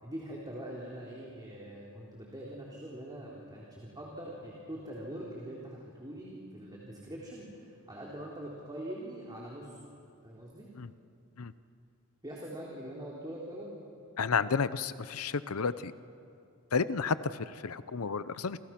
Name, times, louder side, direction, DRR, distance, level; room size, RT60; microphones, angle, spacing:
voice 1, 0.0-9.8 10.2-10.7 12.2-13.7, right 1 dB, 20° right, -4 dB, 3.6 m, -43 dB
voice 2, 14.2-15.9 16.7-18.6, left 5 dB, 85° left, 14 dB, 0.7 m, -31 dB
28.5 x 28.0 x 6.0 m, 2.5 s
head